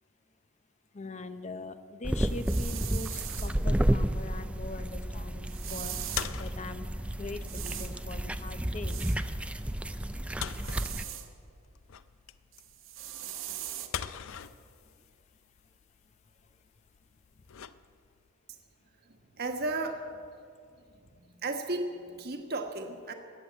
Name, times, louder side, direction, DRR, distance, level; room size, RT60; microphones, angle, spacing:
voice 1, 0.9-9.2 14.2-14.4 14.8-15.1 16.4-16.6 17.3-17.4, left 3 dB, 35° left, 10 dB, 0.7 m, -43 dB
sound 1, 2.0-11.0, right 1 dB, 5° right, 0.4 m, -31 dB
sound 2, 2.3-3.6 5.5-6.3 7.4-7.9 8.9-9.2 10.5-11.3 12.5-13.9, right 12 dB, 65° right, 1.0 m, -40 dB
sound 3, 3.2-18.3, left 8 dB, 70° left, 0.5 m, -44 dB
voice 2, 19.3-20.0 20.8-20.9 21.4-23.1, right 2 dB, 50° right, 5 dB, 1.4 m, -34 dB
20.0 x 8.0 x 8.7 m, 2.4 s
head